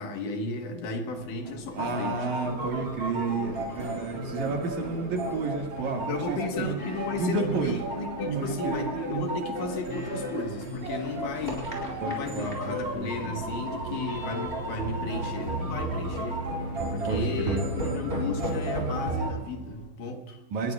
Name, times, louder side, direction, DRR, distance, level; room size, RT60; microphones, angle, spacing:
voice 1, 0.0-2.2 6.0-16.4 16.9-20.4, left 3 dB, 75° left, 4 dB, 3.0 m, -34 dB
sound 1, 1.1-19.3, right 1 dB, 15° right, 4.9 m, -37 dB
sound 2, 1.8-19.3, right 1 dB, 35° right, 3.0 m, -35 dB
voice 2, 1.8-6.7 7.1-7.7 8.3-8.9 12.0-13.1 17.0-17.6 20.5-20.7, right 4 dB, 70° right, 1 dB, 3.2 m, -31 dB
sound 3, 2.4-19.9, equal, 50° left, 8.6 m, -47 dB
28.0 x 20.0 x 2.4 m, 1.1 s
omnidirectional pair, 3.7 m